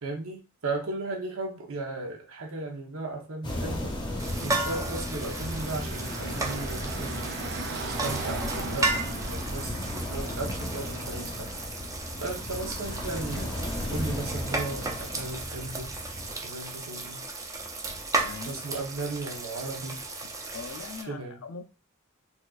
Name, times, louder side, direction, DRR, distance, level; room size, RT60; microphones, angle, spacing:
voice 1, 0.0-4.0 4.4-7.4 7.8-8.9 9.3-11.5 12.2-13.6 13.9-15.9 16.4-17.3 18.4-20.0 21.1-21.4, right 2 dB, 80° right, 1 dB, 0.9 m, -36 dB
sound 1, 3.4-16.3, left 1 dB, 20° left, 0.7 m, -35 dB
sound 2, 4.2-21.0, right 2 dB, 15° right, 0.5 m, -35 dB
Car passing by / Traffic noise roadway noise, 4.8-11.8, right 3 dB, 55° right, 0.6 m, -39 dB
voice 2, 18.2-18.6 20.5-21.6, left 5 dB, 90° left, 7 dB, 0.6 m, -41 dB
4.1 x 2.5 x 2.4 m, 0.31 s
head